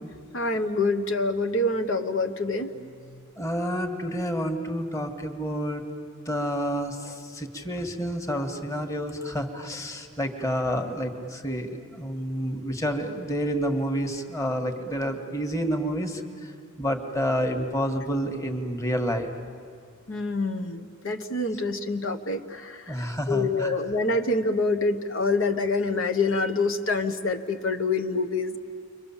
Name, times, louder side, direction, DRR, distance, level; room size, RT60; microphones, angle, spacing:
voice 1, 0.3-2.7 20.1-28.6, left 3 dB, 70° left, 6 dB, 1.1 m, -26 dB
voice 2, 3.4-5.8 6.3-16.2 16.8-19.3 22.9-23.8, equal, 15° left, 4 dB, 1.6 m, -29 dB
30.0 x 24.0 x 7.3 m, 2.2 s
head